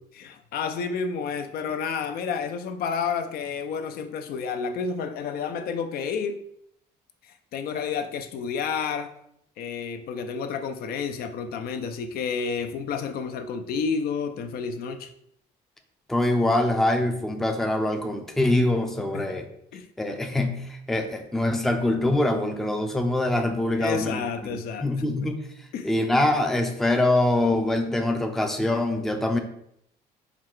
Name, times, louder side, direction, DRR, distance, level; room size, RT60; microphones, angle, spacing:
voice 1, 0.1-6.4 7.5-9.1 9.6-15.1 19.1-19.4 19.7-19.9 23.7-24.9 25.7-25.9, left 6 dB, 65° left, 8 dB, 0.4 m, -30 dB
voice 2, 16.1-19.5 20.0-25.4 25.8-29.4, left 1 dB, ahead, 5 dB, 0.4 m, -24 dB
4.6 x 2.2 x 3.7 m, 0.73 s
cardioid pair, 110°, 17 cm